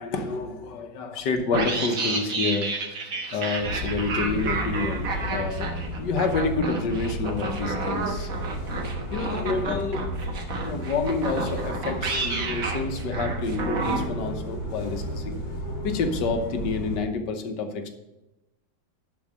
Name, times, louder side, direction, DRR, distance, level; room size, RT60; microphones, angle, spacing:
voice 1, 0.0-2.7 3.3-8.3 9.1-10.2 10.6-15.4 15.8-17.9, left 4 dB, 80° left, 6 dB, 1.6 m, -28 dB
sound 1, 1.5-14.1, right 3 dB, 55° right, 1.6 m, -31 dB
sound 2, 3.6-17.0, equal, 60° left, 3.5 m, -33 dB
11.0 x 4.5 x 6.1 m, 0.94 s
omnidirectional pair, 1.9 m